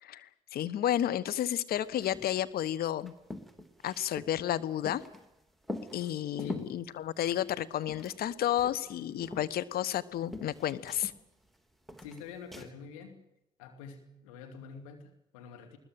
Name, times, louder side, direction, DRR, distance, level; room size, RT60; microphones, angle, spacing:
voice 1, 0.0-3.1 3.8-5.0 5.9-11.1, left 11 dB, 65° left, 14 dB, 1.3 m, -31 dB
sound 1, 1.7-2.4 2.6-2.7 3.0-5.3 5.6-6.8 7.4-8.3 8.6-10.0 10.3-11.6 11.9-12.7, left 2 dB, ahead, 3.5 m, -43 dB
voice 2, 6.4-6.8 12.0-13.2 13.6-15.8, left 6 dB, 80° left, 4 dB, 2.8 m, -47 dB
20.5 x 20.0 x 7.7 m, 0.89 s
hypercardioid pair, 45°, 17 cm